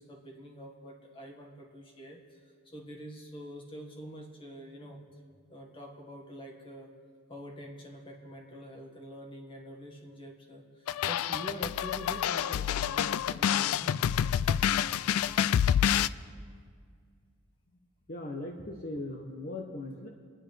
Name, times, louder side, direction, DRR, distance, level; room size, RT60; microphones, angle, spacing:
voice 1, 0.0-5.0 5.5-6.9 7.3-14.0, right 1 dB, 25° left, 0 dB, 1.7 m, -46 dB
sound 1, 10.9-16.1, left 9 dB, 75° left, 0.3 m, -28 dB
voice 2, 18.1-20.1, left 2 dB, 40° left, 1 dB, 1.0 m, -39 dB
28.0 x 10.0 x 3.4 m, 2.1 s
head